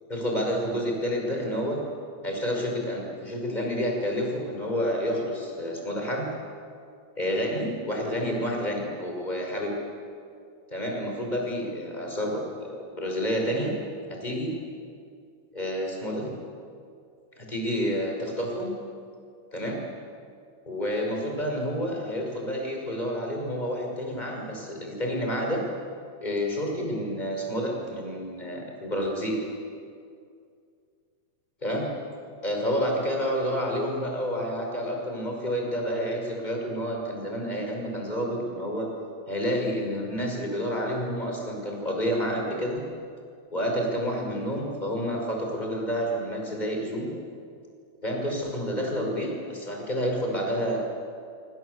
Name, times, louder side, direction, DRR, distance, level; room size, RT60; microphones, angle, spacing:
voice 1, 0.1-1.8 2.2-6.3 7.2-9.7 10.7-13.7 14.1-14.5 15.5-16.3 17.4-18.7 19.5-19.8 20.7-25.6 26.2-29.4 31.6-31.9 32.4-38.9 39.3-42.9 43.5-47.1 48.0-50.8, equal, 15° left, 0 dB, 5.8 m, -29 dB
26.0 x 26.0 x 8.2 m, 2.3 s
omnidirectional pair, 3.3 m